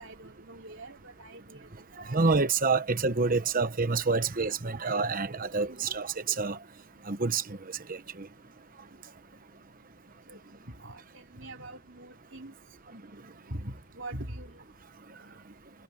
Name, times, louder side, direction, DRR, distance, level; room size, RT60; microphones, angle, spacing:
voice 1, 0.0-1.9 3.9-4.0 5.7-5.9 10.3-10.4 10.7-12.5 13.5-14.6 15.1-15.3, right 1 dB, 60° right, 3.3 m, -43 dB
voice 2, 2.1-6.6 7.1-7.6 7.9-8.3, right 4 dB, 40° right, 1.1 m, -27 dB
head